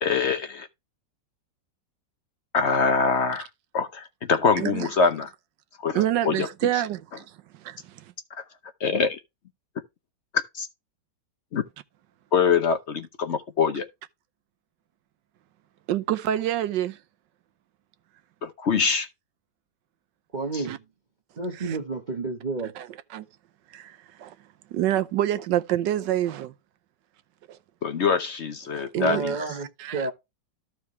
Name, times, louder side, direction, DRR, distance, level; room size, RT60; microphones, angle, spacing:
voice 1, 0.0-0.7 2.5-3.5 3.7-5.3 5.8-6.5 6.7-6.8 8.8-9.2 10.5-10.7 11.5-11.6 12.3-13.9 18.4-19.1 20.5-20.6 27.8-29.4, left 5 dB, 55° left, 0.8 m, -24 dB
voice 2, 4.6-4.9 5.9-7.2 7.6-7.8 15.9-17.0 20.6-20.8 21.6-21.8 22.8-22.9 23.1-23.2 23.7-24.3 24.7-26.5 27.5-27.6 28.8-30.1, right 12 dB, 80° right, 1.4 m, -27 dB
voice 3, 20.3-20.8 21.4-22.7 29.0-29.7 29.9-30.1, right 3 dB, 30° right, 0.9 m, -30 dB
14.0 x 4.7 x 3.1 m
omnidirectional pair, 2.0 m